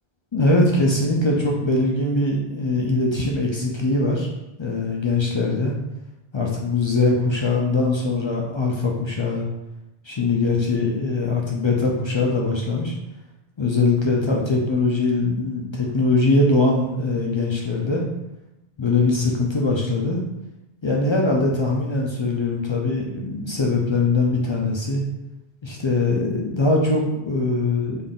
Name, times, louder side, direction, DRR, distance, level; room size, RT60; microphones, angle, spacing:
voice 1, 0.3-4.3 4.6-5.7 6.3-9.5 10.0-12.9 13.6-18.0 18.8-20.2 20.8-25.0 25.6-28.0, left 2 dB, 45° left, -2 dB, 0.4 m, -21 dB
3.9 x 2.5 x 3.5 m, 0.93 s
omnidirectional pair, 1.0 m